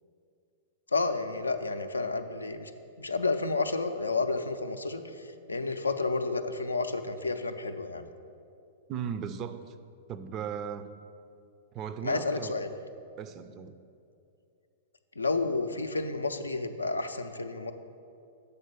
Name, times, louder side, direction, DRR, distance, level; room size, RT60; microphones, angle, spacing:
voice 1, 0.9-2.7 3.0-8.1 12.0-12.7 15.2-17.7, left 3 dB, 80° left, 8 dB, 0.4 m, -31 dB
voice 2, 8.9-9.7 10.1-10.9 11.7-12.6 13.2-13.7, right 8 dB, 30° right, 11 dB, 0.4 m, -37 dB
6.9 x 4.3 x 6.7 m, 2.5 s
figure-of-eight pair, 105°, 0 cm